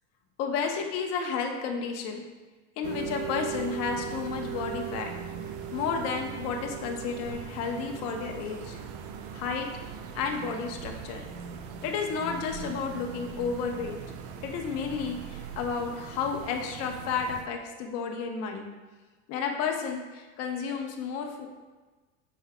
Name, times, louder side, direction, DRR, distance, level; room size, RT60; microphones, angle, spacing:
voice 1, 0.4-2.2 2.8-5.1 5.7-8.8 9.3-9.7 10.1-11.3 11.8-14.0 14.4-18.7 19.3-21.5, left 5 dB, 45° left, 3 dB, 1.0 m, -32 dB
sound 1, 2.8-17.4, right 7 dB, 45° right, 0.6 m, -39 dB
8.6 x 6.3 x 2.3 m, 1.3 s
supercardioid pair, 145°, 34 cm